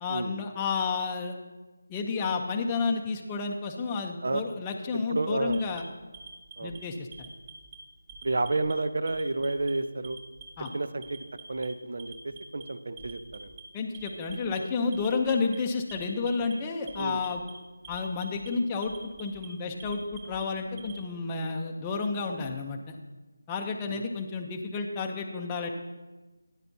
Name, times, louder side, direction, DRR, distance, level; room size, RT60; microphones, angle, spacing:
voice 1, 0.0-1.4 1.9-5.8 6.6-7.1 10.6-10.7 13.7-17.4 17.9-23.0 23.5-25.7, left 4 dB, 15° left, 1 dB, 0.6 m, -31 dB
voice 2, 5.1-5.6 6.6-6.8 8.2-10.2 10.7-11.2 11.5-12.1 12.5-13.6 17.0-17.2 23.9-24.1, right 2 dB, 60° right, 11 dB, 0.7 m, -30 dB
Alarm, 5.5-6.8 7.1-7.8 8.1-8.7 9.1-9.7 10.0-10.7 11.0-11.7 12.0-12.6 13.0-13.6 13.9-14.6 14.9-15.6 15.9-16.5 16.9-17.5 17.8-18.5 18.8-19.5 19.8-21.0, right 4 dB, 10° right, 1.1 m, -47 dB
13.5 x 9.8 x 2.7 m, 1.2 s
figure-of-eight pair, 165°, 0 cm